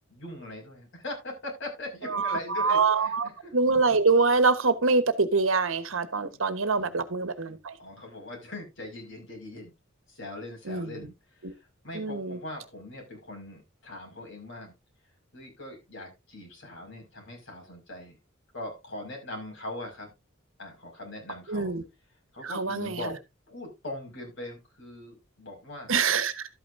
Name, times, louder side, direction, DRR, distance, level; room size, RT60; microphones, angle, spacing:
voice 1, 0.1-3.5 6.3-6.4 6.8-7.0 7.8-9.7 10.1-11.6 11.8-14.7 15.3-18.2 18.5-20.1 20.6-21.7 22.3-23.2 23.5-25.9, left 1 dB, 65° left, 5.5 m, -41 dB
voice 2, 2.1-7.8 10.7-11.1 11.4-11.5 11.9-12.4 21.5-21.8 22.4-23.0 25.9-26.4, right 4 dB, 75° right, 1.2 m, -25 dB
12.5 x 8.9 x 2.6 m
head